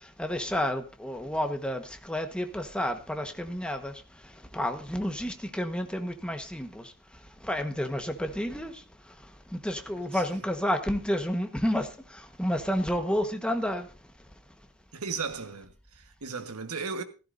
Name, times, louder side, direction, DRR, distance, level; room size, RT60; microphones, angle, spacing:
voice 1, 0.2-3.9 4.5-6.9 7.4-8.8 9.5-13.9, equal, 5° left, 1.2 m, -30 dB
voice 2, 14.9-17.0, right 5 dB, 80° right, 1.3 m, -36 dB
15.0 x 13.5 x 2.6 m
head